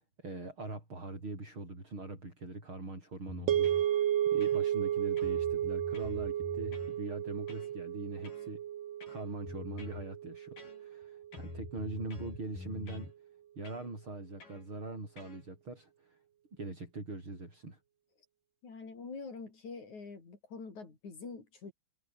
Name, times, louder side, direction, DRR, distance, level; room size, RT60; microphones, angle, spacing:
voice 1, 0.2-8.6 9.1-13.1 13.6-16.2 16.6-17.8, right 2 dB, 40° right, 8.8 m, -42 dB
sound 1, 3.3-3.9 4.4-4.9 5.2-7.0 7.5-7.7 8.2-8.5 9.0-10.1 10.6-11.0 11.3-13.1 13.6-13.9 14.4-14.6 15.2-15.4, left 4 dB, 85° left, 9.0 m, -46 dB
sound 2, 3.5-11.8, right 11 dB, 90° right, 3.4 m, -33 dB
voice 2, 18.6-21.7, left 4 dB, 65° left, 6.4 m, -45 dB
omnidirectional pair, 3.7 m